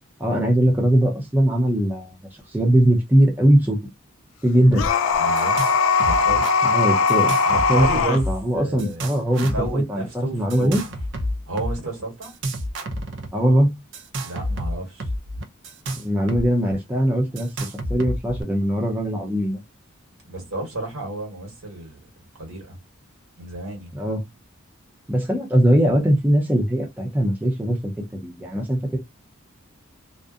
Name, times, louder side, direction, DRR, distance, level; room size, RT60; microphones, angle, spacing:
voice 1, 0.2-2.2 2.5-3.8 4.4-4.9 6.7-7.3 7.7-10.8 13.3-13.7 16.0-19.6 23.9-24.2 25.1-27.9 28.2-29.0, right 1 dB, 10° right, 0.5 m, -20 dB
sound 1, 4.7-8.2, left 5 dB, 70° left, 0.4 m, -20 dB
sound 2, 4.7-4.9 5.1-5.7 6.0-6.5 7.1-8.5 8.8-9.7 10.5-11.8 12.2-13.3 13.9-16.5 16.7-16.8 17.4-18.4, equal, 60° right, 0.5 m, -29 dB
voice 2, 5.2-5.5 6.0-6.4 7.5-8.2 8.5-9.1 9.4-10.8 11.5-12.3 14.2-15.1 20.3-22.0 22.4-22.8 23.4-23.9, right 2 dB, 85° right, 1.3 m, -31 dB
2.6 x 2.0 x 2.4 m
head